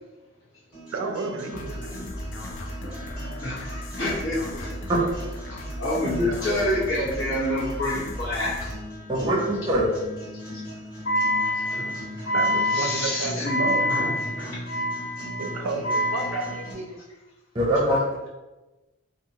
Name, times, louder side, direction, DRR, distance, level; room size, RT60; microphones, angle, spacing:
sound 1, 0.7-16.7, equal, 25° left, 1.5 m, -40 dB
voice 1, 0.9-2.1 6.0-6.6 12.3-13.8 15.4-17.0, right 3 dB, 80° right, 5 dB, 0.4 m, -32 dB
sound 2, 1.5-8.7, left 1 dB, 60° left, 0.4 m, -36 dB
voice 2, 2.7-4.9 5.5-8.6 10.3-10.6 11.0-16.6, left 1 dB, 80° left, -7 dB, 1.1 m, -27 dB
voice 3, 9.1-9.9 17.5-18.0, right 1 dB, 20° right, -2 dB, 0.5 m, -22 dB
2.7 x 2.3 x 2.7 m, 1.1 s
head